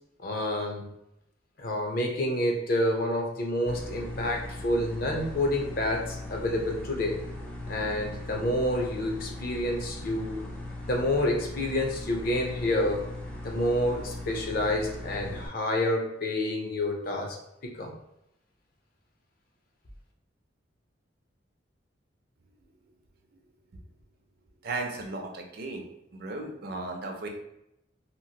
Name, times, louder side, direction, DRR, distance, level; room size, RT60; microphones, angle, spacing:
voice 1, 0.2-0.8 1.6-7.2 7.7-10.4 10.9-13.0 13.4-17.4 17.8-17.9, left 1 dB, 50° left, 1 dB, 0.6 m, -28 dB
sound 1, 3.7-15.5, left 1 dB, 10° left, 0.4 m, -39 dB
voice 2, 24.6-25.9 26.1-27.3, right 3 dB, 55° right, 3 dB, 0.5 m, -35 dB
2.9 x 2.4 x 2.8 m, 0.82 s
head